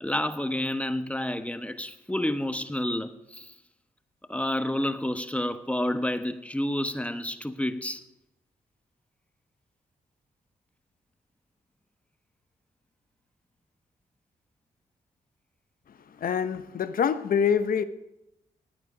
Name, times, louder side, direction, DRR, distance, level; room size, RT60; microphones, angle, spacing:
voice 1, 0.0-3.5 4.3-8.0, left 1 dB, 10° left, 1.0 m, -29 dB
voice 2, 16.2-17.8, left 7 dB, 65° left, 0.9 m, -25 dB
15.0 x 9.4 x 5.0 m
supercardioid pair, 55°, 16 cm